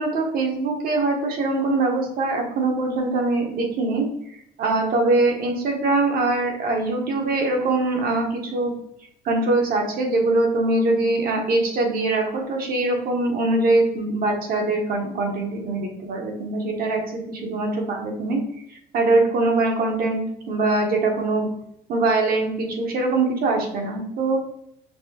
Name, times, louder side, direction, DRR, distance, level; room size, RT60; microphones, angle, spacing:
voice 1, 0.0-4.1 4.6-8.7 9.2-18.4 18.9-21.5 21.9-24.4, right 2 dB, 60° right, 2 dB, 1.1 m, -22 dB
5.8 x 2.1 x 2.9 m, 0.74 s
cardioid pair, 110°, 17 cm